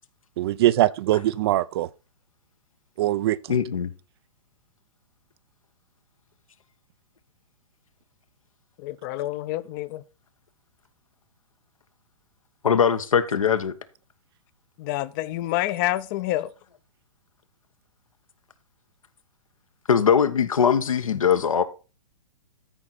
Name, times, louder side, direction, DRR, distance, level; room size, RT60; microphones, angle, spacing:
voice 1, 0.4-1.9 3.0-3.6, right 14 dB, 50° right, 0.5 m, -22 dB
voice 2, 3.5-3.9 12.6-13.7 19.9-21.6, left 7 dB, 80° left, 1.2 m, -21 dB
voice 3, 8.8-10.0 14.8-16.5, left 16 dB, 35° left, 0.7 m, -28 dB
13.5 x 4.8 x 4.1 m
hypercardioid pair, 125°, 17 cm